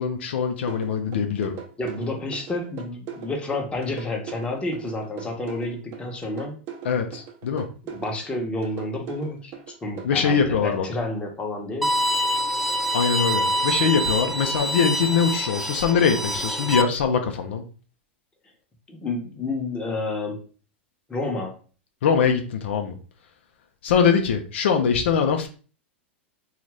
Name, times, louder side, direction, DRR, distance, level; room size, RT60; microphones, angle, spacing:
voice 1, 0.0-1.6 6.8-7.7 10.0-10.9 12.9-17.6 22.0-23.0 23.8-25.5, left 6 dB, 75° left, 5 dB, 0.5 m, -22 dB
sound 1, 0.7-10.1, right 8 dB, 45° right, 0.7 m, -39 dB
voice 2, 1.8-6.6 7.8-9.5 9.8-11.9 18.9-20.4 21.1-21.6, left 2 dB, 15° left, 1 dB, 0.9 m, -30 dB
Bowed string instrument, 11.8-16.8, equal, 5° right, 0.3 m, -25 dB
2.6 x 2.4 x 3.2 m, 0.38 s
hypercardioid pair, 105°, 6 cm